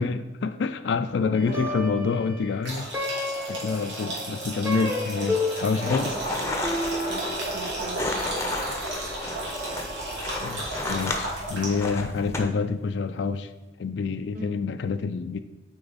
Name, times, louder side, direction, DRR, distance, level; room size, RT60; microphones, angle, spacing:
voice 1, 0.0-2.9 3.4-6.1 10.4-13.5 13.8-15.4, left 4 dB, 80° left, 9 dB, 0.4 m, -27 dB
voice 2, 1.2-1.9 5.8-8.1 8.3-8.5 14.3-14.6, right 2 dB, 50° right, 7 dB, 0.7 m, -38 dB
Plucked string instrument, 1.3-10.8, left 2 dB, 10° right, 1.0 m, -34 dB
sound 1, 2.6-12.0, right 1 dB, 90° right, 2.5 m, -34 dB
sound 2, 5.9-12.4, left 2 dB, 15° left, 0.7 m, -33 dB
8.6 x 4.5 x 4.0 m, 1.1 s
head